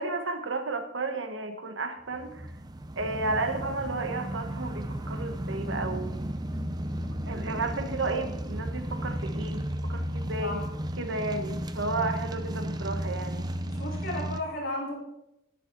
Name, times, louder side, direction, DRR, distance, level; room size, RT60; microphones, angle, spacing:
voice 1, 0.0-2.5 3.0-6.2 7.3-10.6 11.0-13.5, right 3 dB, 70° right, 7 dB, 1.3 m, -33 dB
sound 1, 2.1-14.4, right 1 dB, 20° right, 0.6 m, -34 dB
voice 2, 13.6-14.9, left 1 dB, 55° left, -4 dB, 5.7 m, -34 dB
11.0 x 11.0 x 4.6 m, 0.86 s
head